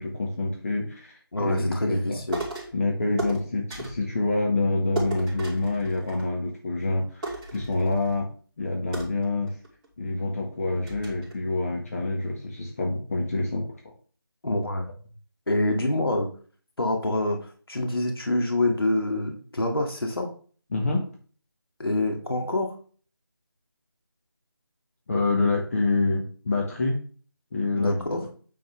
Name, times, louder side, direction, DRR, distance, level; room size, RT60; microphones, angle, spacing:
voice 1, 0.0-2.2 2.7-8.3 8.6-9.5 10.0-13.6 20.7-21.1 25.1-27.0 27.5-28.3, left 2 dB, 35° left, 0 dB, 1.6 m, -27 dB
voice 2, 1.3-2.4 14.4-14.9 15.5-16.3 16.8-20.3 21.8-22.7 27.8-28.2, left 1 dB, 75° left, 2 dB, 2.2 m, -26 dB
sound 1, 2.3-2.8 3.2-4.1 4.9-6.5 6.8-6.9 7.2-8.2 8.9-9.9 10.4-10.5 10.9-11.3, right 2 dB, 15° right, 2.9 m, -35 dB
9.5 x 6.9 x 3.4 m, 0.42 s
figure-of-eight pair, 165°, 13 cm